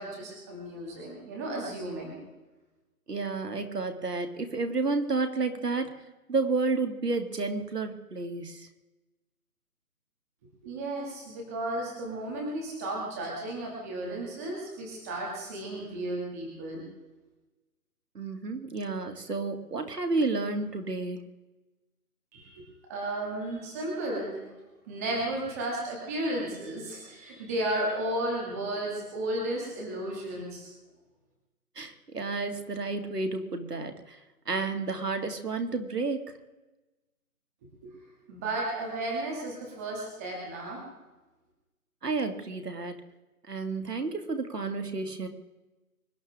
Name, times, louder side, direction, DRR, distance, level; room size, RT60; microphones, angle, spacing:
voice 1, 0.0-2.2 10.6-16.9 22.3-24.4 24.9-30.7 37.8-37.9 38.3-40.8, right 1 dB, 10° right, -2 dB, 2.4 m, -34 dB
voice 2, 3.1-6.0 6.3-8.7 18.1-21.3 31.8-34.2 34.5-36.4 42.0-43.0 43.5-45.3, right 3 dB, 85° right, 6 dB, 2.5 m, -31 dB
25.0 x 11.5 x 3.7 m, 1.1 s
hypercardioid pair, 170°, 46 cm